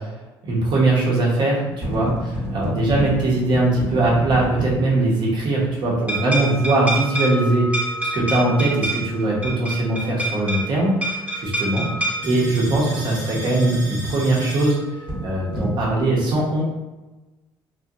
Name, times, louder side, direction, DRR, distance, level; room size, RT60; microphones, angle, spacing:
voice 1, 0.4-7.9 8.1-11.9 12.2-14.8 15.2-16.6, right 2 dB, 55° right, -4 dB, 0.8 m, -21 dB
sound 1, 1.7-5.3 6.1-16.0, right 1 dB, 15° right, 0.8 m, -28 dB
2.6 x 2.2 x 2.3 m, 1.1 s
cardioid pair, 100°, 9 cm